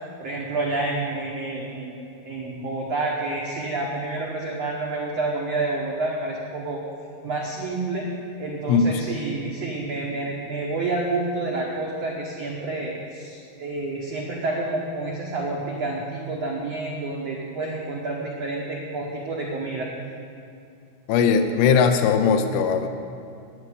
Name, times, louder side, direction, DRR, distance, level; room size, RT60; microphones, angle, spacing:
voice 1, 0.2-1.9 2.2-6.8 7.2-8.1 8.4-19.9, right 2 dB, 75° right, -3 dB, 1.4 m, -29 dB
voice 2, 8.7-9.0 21.1-22.9, left 6 dB, 80° left, 6 dB, 2.5 m, -19 dB
9.8 x 9.5 x 8.4 m, 2.6 s
omnidirectional pair, 4.8 m